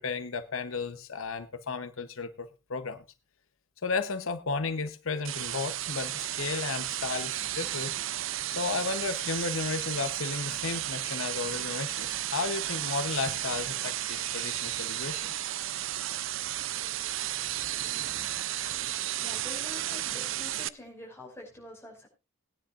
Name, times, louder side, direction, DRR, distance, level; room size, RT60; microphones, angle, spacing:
voice 1, 0.0-3.0 3.8-7.9 8.5-15.5 18.6-18.8, left 4 dB, 80° left, 0.9 m, -34 dB
sound 1, 5.2-20.7, right 13 dB, 70° right, 0.5 m, -33 dB
voice 2, 19.2-22.1, left 1 dB, 10° left, 5.5 m, -46 dB
20.5 x 9.9 x 2.5 m
head